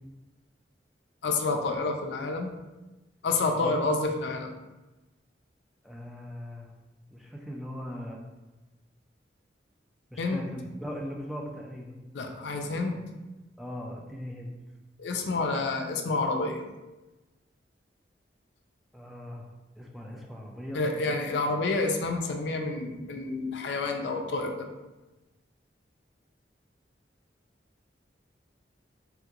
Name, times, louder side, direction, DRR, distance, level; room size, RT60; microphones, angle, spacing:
voice 1, 1.2-2.5 3.2-4.5 10.2-10.4 12.1-13.0 15.0-16.6 20.7-24.7, left 3 dB, 75° left, 3 dB, 0.4 m, -29 dB
voice 2, 5.8-6.7 7.1-8.2 10.1-12.0 13.6-14.5 18.9-19.5 19.8-20.8, equal, ahead, -1 dB, 0.4 m, -39 dB
3.5 x 2.8 x 2.4 m, 1.1 s
head